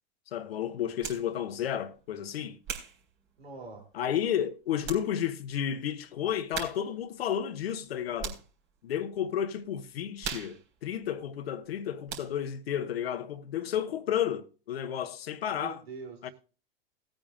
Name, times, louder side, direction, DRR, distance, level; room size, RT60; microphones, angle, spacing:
voice 1, 0.3-2.6 3.9-8.4 8.8-15.8 16.2-16.3, left 9 dB, 75° left, 1.1 m, -32 dB
sound 1, 1.0-1.3 1.9-3.9 4.4-4.5 4.8-5.1 5.4-5.5 6.5-7.0 7.3-8.6 9.1-9.4 9.6-11.8 12.1-12.6, right 7 dB, 50° right, 3.8 m, -40 dB
voice 2, 3.4-3.8 15.5-16.3, right 4 dB, 80° right, 3.3 m, -43 dB
19.0 x 8.9 x 2.5 m
hypercardioid pair, 100°, 31 cm